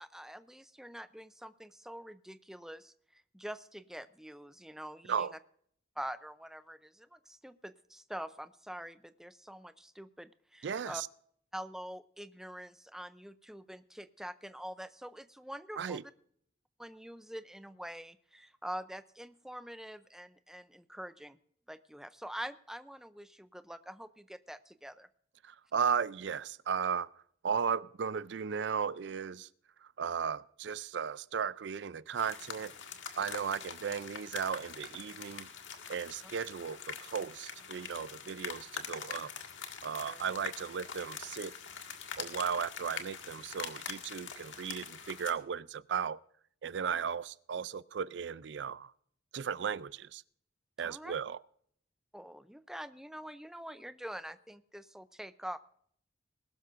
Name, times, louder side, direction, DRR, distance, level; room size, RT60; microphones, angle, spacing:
voice 1, 0.0-5.4 6.0-11.0 11.5-16.1 16.8-21.4 21.7-25.1 36.2-36.3 40.1-40.2 42.5-42.6 46.8-47.0 50.8-51.1 52.1-55.6, equal, 5° right, 0.5 m, -45 dB
voice 2, 10.6-11.1 15.8-16.0 25.4-27.1 27.4-29.5 30.0-32.7 33.2-35.5 35.9-39.3 39.8-41.5 42.2-46.2 46.6-48.9 49.3-50.2 50.8-51.4, right 7 dB, 65° right, 0.4 m, -35 dB
sound 1, 32.2-45.3, left 6 dB, 85° left, 1.7 m, -44 dB
21.0 x 12.5 x 2.5 m
head